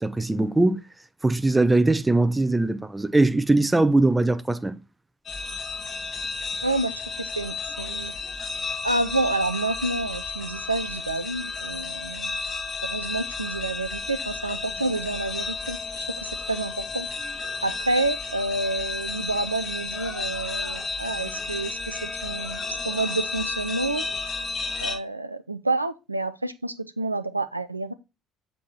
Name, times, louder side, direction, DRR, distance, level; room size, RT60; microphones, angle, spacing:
voice 1, 0.0-0.8 1.2-4.8, right 2 dB, 10° right, 0.7 m, -21 dB
sound 1, 5.3-25.0, left 4 dB, 35° left, 2.0 m, -32 dB
voice 2, 6.6-8.1 8.8-12.4 12.8-17.1 17.6-24.0 24.8-27.9, right 2 dB, 85° right, 0.4 m, -29 dB
7.5 x 4.4 x 4.1 m
figure-of-eight pair, 55°, 0 cm